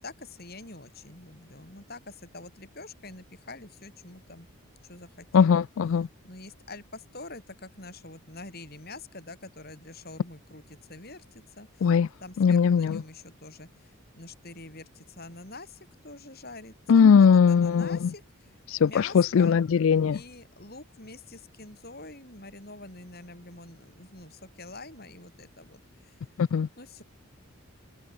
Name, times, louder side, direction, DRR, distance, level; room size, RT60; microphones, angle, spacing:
voice 1, 0.0-4.5 4.9-5.6 6.2-11.9 12.2-19.6 20.1-26.1 26.8-27.0, left 2 dB, 45° left, 7.6 m, -46 dB
voice 2, 5.3-6.1 11.8-12.1 12.4-13.0 16.9-18.1 18.7-20.2 26.4-26.7, left 6 dB, 65° left, 0.3 m, -20 dB
head